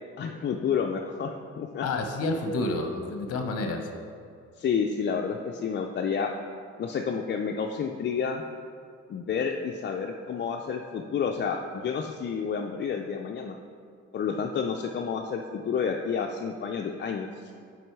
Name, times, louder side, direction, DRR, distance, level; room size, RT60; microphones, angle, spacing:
voice 1, 0.2-1.9 2.6-2.7 4.6-6.3 6.8-8.4 9.1-13.6 14.1-17.5, left 6 dB, 40° left, 3 dB, 0.4 m, -30 dB
voice 2, 1.8-3.9, left 2 dB, 55° left, 5 dB, 0.8 m, -29 dB
6.1 x 5.2 x 4.6 m, 2.4 s
cardioid pair, 90°, 30 cm